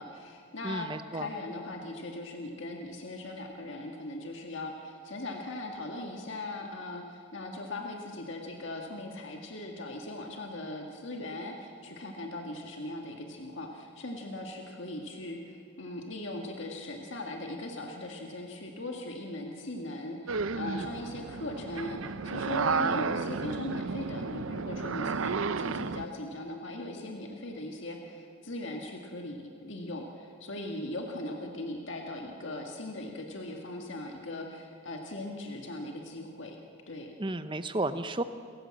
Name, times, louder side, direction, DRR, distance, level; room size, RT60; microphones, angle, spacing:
voice 1, 0.0-36.6 36.9-37.1, left 2 dB, 60° left, 2 dB, 1.8 m, -39 dB
voice 2, 0.6-1.3 37.2-38.2, right 2 dB, 25° right, 11 dB, 0.7 m, -32 dB
sound 1, 20.3-26.1, right 5 dB, 75° right, 0.6 m, -32 dB
28.5 x 15.0 x 7.6 m, 2.3 s
head